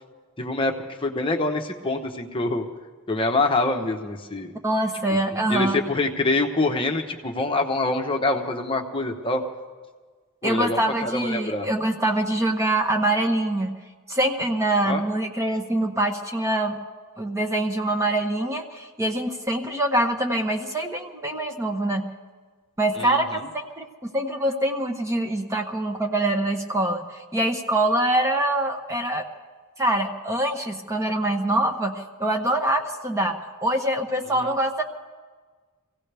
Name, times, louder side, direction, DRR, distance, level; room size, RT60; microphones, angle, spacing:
voice 1, 0.4-0.7 1.0-2.7 3.1-4.5 5.5-9.4 10.4-11.7 14.9-15.0 23.0-23.4 34.4-34.5, left 2 dB, 25° left, 3 dB, 0.9 m, -25 dB
voice 2, 4.6-5.8 10.4-13.8 14.1-16.8 17.2-22.1 22.8-29.3 29.8-34.8, right 1 dB, 15° right, 4 dB, 0.9 m, -24 dB
25.0 x 16.5 x 3.4 m, 1.4 s
head